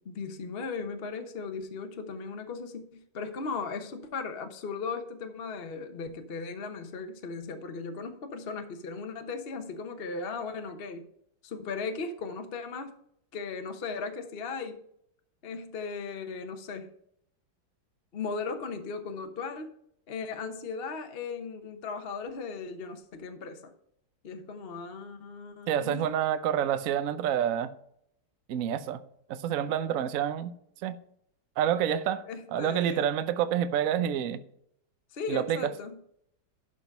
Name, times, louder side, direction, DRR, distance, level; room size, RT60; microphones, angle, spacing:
voice 1, 0.0-11.1 11.4-12.9 13.3-14.8 15.4-16.9 18.1-19.7 20.1-23.7 24.2-26.1 32.3-33.1 35.1-36.0, left 4 dB, 40° left, 0.9 m, -37 dB
voice 2, 25.7-27.7 28.5-29.0 29.3-30.5 30.8-31.0 31.6-32.2 32.5-34.4 35.3-35.6, right 9 dB, 70° right, 0.8 m, -28 dB
11.5 x 5.1 x 5.3 m
omnidirectional pair, 2.3 m